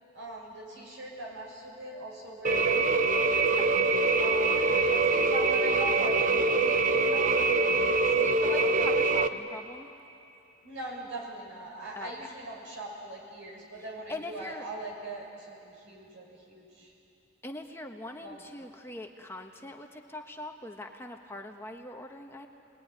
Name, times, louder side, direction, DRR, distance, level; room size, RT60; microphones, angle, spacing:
voice 1, 0.1-3.1 4.2-8.7 10.6-16.9 18.2-18.5, right 2 dB, 75° right, -2 dB, 7.0 m, -42 dB
sound 1, 2.4-9.3, right 3 dB, 40° right, 0.9 m, -24 dB
voice 2, 3.5-3.9 4.6-5.0 8.1-9.9 11.9-12.1 13.7-14.7 17.4-22.5, left 1 dB, 15° left, 3 dB, 1.2 m, -42 dB
28.5 x 21.0 x 9.8 m, 2.8 s
head